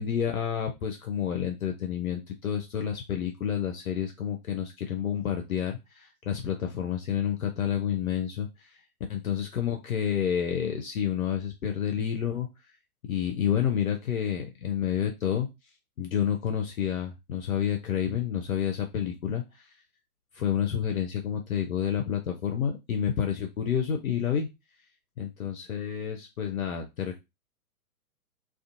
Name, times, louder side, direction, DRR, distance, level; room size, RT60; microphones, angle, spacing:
voice 1, 0.0-8.8 9.1-12.5 13.1-15.5 16.0-19.7 20.3-24.5 25.2-27.2, left 9 dB, 65° left, 4 dB, 0.6 m, -29 dB
2.4 x 2.4 x 2.5 m, 0.22 s
figure-of-eight pair, 115°, 45 cm